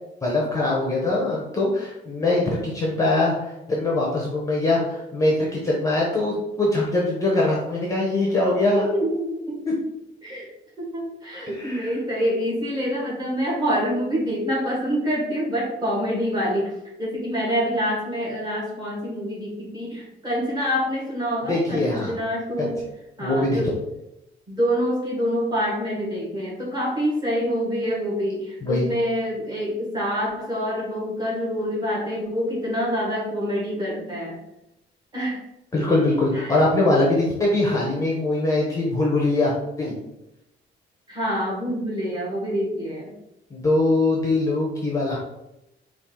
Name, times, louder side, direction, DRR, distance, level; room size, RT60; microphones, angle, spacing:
voice 1, 0.2-8.9 9.7-9.8 11.5-11.9 21.5-22.1 22.6-22.7 23.2-23.6 28.6-28.8 35.7-39.5 39.8-39.9 43.5-45.2, left 2 dB, 15° left, -3 dB, 0.7 m, -22 dB
voice 2, 8.7-9.6 10.2-10.5 10.8-22.8 23.2-23.7 24.5-34.3 35.1-35.4 36.3-36.6 41.1-43.1, equal, 20° right, -5 dB, 1.4 m, -26 dB
4.2 x 2.4 x 3.6 m, 0.88 s
cardioid pair, 170°, 19 cm